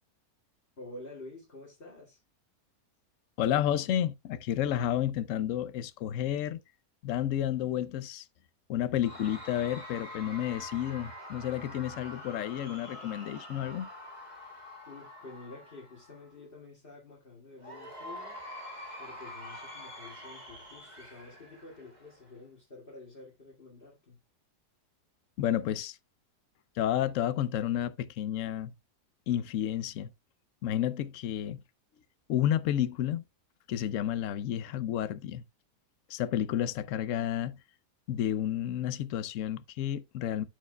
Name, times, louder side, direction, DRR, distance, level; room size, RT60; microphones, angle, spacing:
voice 1, 0.8-2.2 14.9-18.4 19.0-24.2, left 2 dB, 35° left, 2.2 m, -49 dB
voice 2, 3.4-6.6 7.0-8.2 8.7-13.9 25.4-26.0 26.8-28.7 29.3-30.1 30.6-31.6 32.3-33.2 33.7-35.4 36.1-37.6 38.1-40.4, left 11 dB, 65° left, 0.9 m, -31 dB
Cheering / Crowd, 9.0-16.3 17.6-22.3, left 1 dB, 25° right, 2.0 m, -46 dB
13.0 x 4.7 x 2.3 m
omnidirectional pair, 1.7 m